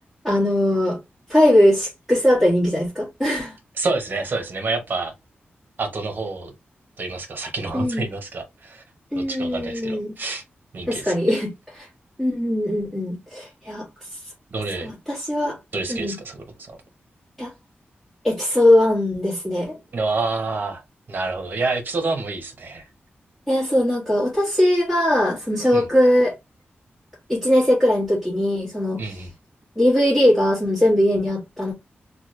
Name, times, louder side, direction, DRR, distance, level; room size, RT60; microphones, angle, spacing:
voice 1, 0.2-1.0 1.3-3.5 7.7-8.0 9.1-10.1 10.9-11.9 12.2-13.8 14.8-15.6 15.9-16.2 17.4-17.5 18.2-19.8 23.5-26.3 27.3-29.0 29.8-31.7, left 1 dB, 5° left, 1.4 m, -20 dB
voice 2, 3.8-5.1 5.8-6.5 7.0-8.8 9.2-10.4 10.7-11.1 14.5-14.9 15.7-16.7 19.9-20.8 21.1-22.8 25.7-25.8 29.0-29.3, right 3 dB, 50° right, 0.9 m, -28 dB
3.0 x 2.3 x 3.0 m
wide cardioid pair, 175°, 4 cm